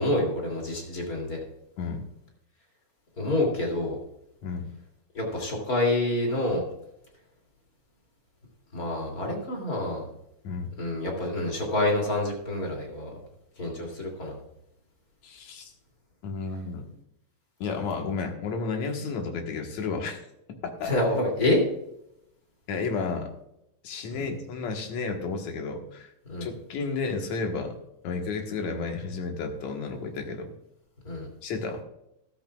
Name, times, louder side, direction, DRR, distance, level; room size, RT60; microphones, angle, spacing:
voice 1, 0.0-1.4 3.2-4.0 5.1-6.6 8.7-10.1 10.8-13.1 13.6-14.4 20.8-21.6 24.1-24.3 26.3-26.5 31.0-31.3, left 1 dB, 30° left, 1 dB, 3.1 m, -27 dB
voice 2, 15.2-15.7 16.2-16.8 17.6-20.2 20.6-20.9 22.7-23.3 23.8-26.1 26.4-27.7 28.0-30.5 31.4-31.8, left 4 dB, 65° left, 3 dB, 2.7 m, -32 dB
13.5 x 13.0 x 2.4 m, 0.80 s
omnidirectional pair, 3.6 m